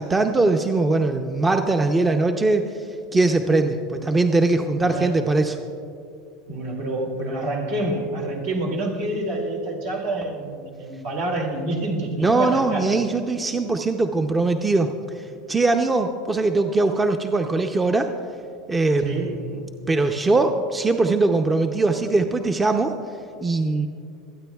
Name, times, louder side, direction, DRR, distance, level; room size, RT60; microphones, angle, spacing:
voice 1, 0.0-2.7 3.1-5.6 12.2-14.9 15.5-18.1 18.7-19.6 19.9-23.0 23.4-23.9, right 3 dB, 20° right, 6 dB, 0.6 m, -21 dB
voice 2, 4.8-5.2 6.5-12.8 19.0-19.3, right 1 dB, 75° right, -1 dB, 2.4 m, -27 dB
26.0 x 9.1 x 2.3 m, 2.4 s
hypercardioid pair, 95°, 0 cm